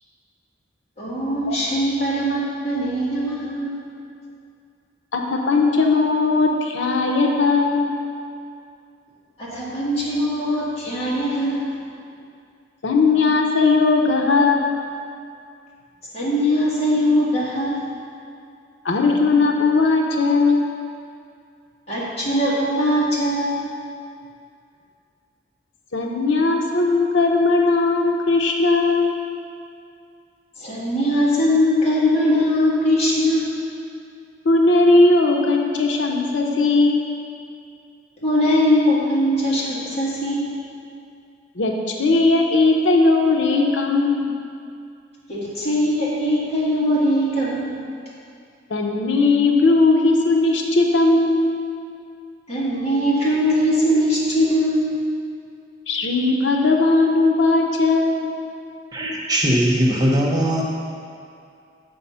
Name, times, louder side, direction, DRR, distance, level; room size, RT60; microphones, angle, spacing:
voice 1, 1.0-3.8 9.4-11.8 16.1-17.9 21.9-23.7 30.6-33.5 38.2-40.6 45.3-47.8 52.5-54.9, equal, 35° left, -7 dB, 1.8 m, -21 dB
voice 2, 5.1-7.9 12.8-14.8 18.8-20.6 25.9-29.2 34.4-37.1 41.6-44.3 48.7-51.5 55.9-58.3, left 3 dB, 85° left, 1 dB, 0.7 m, -18 dB
voice 3, 58.9-60.6, equal, 20° right, -2 dB, 0.7 m, -20 dB
7.0 x 5.3 x 5.5 m, 2.4 s
head